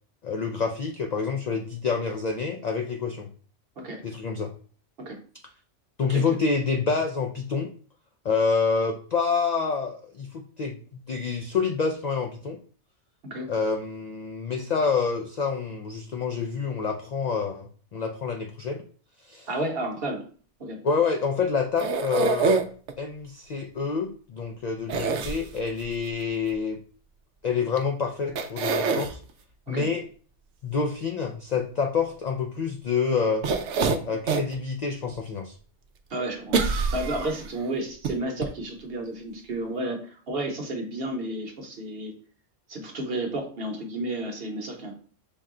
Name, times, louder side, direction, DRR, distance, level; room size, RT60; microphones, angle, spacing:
voice 1, 0.2-3.3 4.0-4.5 6.0-7.7 8.2-12.6 13.5-18.8 19.3-19.5 20.8-22.6 23.0-26.8 27.4-29.1 29.7-30.0 30.6-33.4 34.1-35.5, left 5 dB, 70° left, 3 dB, 0.4 m, -27 dB
voice 2, 19.5-20.2 20.6-20.8 29.7-29.9 36.1-42.1 42.7-45.0, right 1 dB, 55° right, 2 dB, 1.1 m, -32 dB
sound 1, 21.8-22.9 24.9-25.8 27.8-27.9 28.4-29.1 33.4-34.5 35.0-35.1 36.5-37.5 38.0-38.1 38.4-38.5, right 4 dB, 85° right, 0.9 m, -25 dB
5.3 x 2.2 x 3.7 m, 0.43 s
omnidirectional pair, 1.2 m